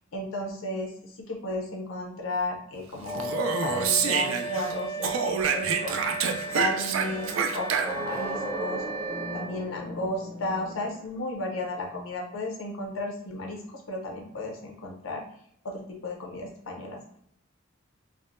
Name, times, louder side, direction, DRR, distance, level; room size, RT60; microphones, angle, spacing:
voice 1, 0.1-3.3 3.6-6.1 6.5-8.8 9.3-13.6 13.9-15.2 15.6-17.2, left 2 dB, 90° left, 2 dB, 0.6 m, -34 dB
Wind instrument woodwind instrument, 3.0-9.6, right 3 dB, 40° right, 1.2 m, -36 dB
Speech, 3.1-4.7 5.0-8.2, right 6 dB, 80° right, 0.4 m, -27 dB
sound 1, 6.4-11.2, right 1 dB, 15° left, 0.5 m, -37 dB
3.4 x 2.0 x 2.5 m, 0.67 s
head